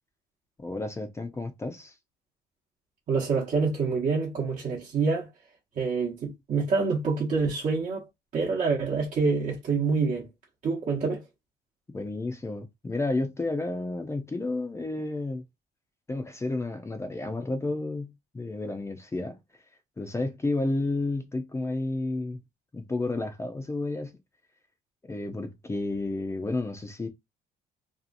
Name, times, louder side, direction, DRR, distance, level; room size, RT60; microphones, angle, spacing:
voice 1, 0.6-1.9 11.9-15.4 16.1-19.4 20.0-22.4 22.7-24.1 25.0-27.1, left 2 dB, 15° left, 0.5 m, -31 dB
voice 2, 3.1-5.3 5.7-8.1 8.3-10.3 10.6-11.2, right 4 dB, 45° right, 0.9 m, -26 dB
2.7 x 2.4 x 2.5 m
cardioid pair, 110°, 17 cm